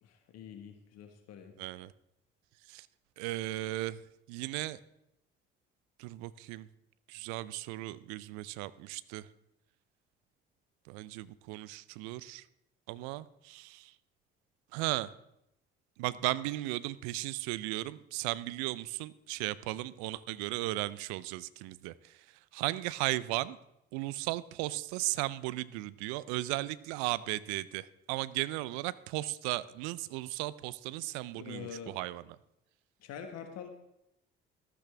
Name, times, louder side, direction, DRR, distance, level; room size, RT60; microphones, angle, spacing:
voice 1, 0.0-1.5 31.3-32.0 33.0-33.7, left 7 dB, 60° left, 6 dB, 1.5 m, -45 dB
voice 2, 1.6-1.9 2.7-2.9 3.2-4.0 4.3-4.8 6.0-6.7 7.1-9.3 10.9-12.4 12.9-13.9 14.7-15.1 16.0-22.2 22.5-23.6 23.9-32.2, right 18 dB, 70° right, 18 dB, 0.6 m, -36 dB
13.5 x 12.5 x 3.4 m, 0.83 s
figure-of-eight pair, 50°, 29 cm